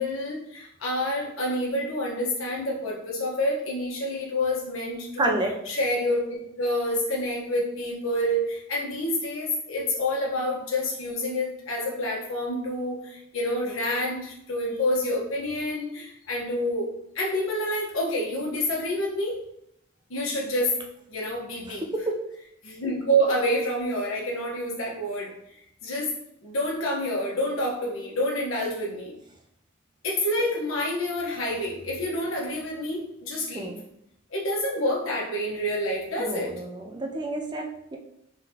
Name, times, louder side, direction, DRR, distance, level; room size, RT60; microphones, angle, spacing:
voice 1, 0.0-5.4 5.7-6.3 6.6-19.4 20.1-20.8 21.1-21.8 22.6-26.1 26.4-29.1 30.0-33.7 34.3-36.5, equal, 80° left, -4 dB, 1.3 m, -28 dB
voice 2, 5.2-5.5 22.1-22.2 33.5-33.8 36.2-38.0, right 2 dB, 20° right, 2 dB, 0.5 m, -29 dB
3.8 x 3.7 x 2.9 m, 0.78 s
head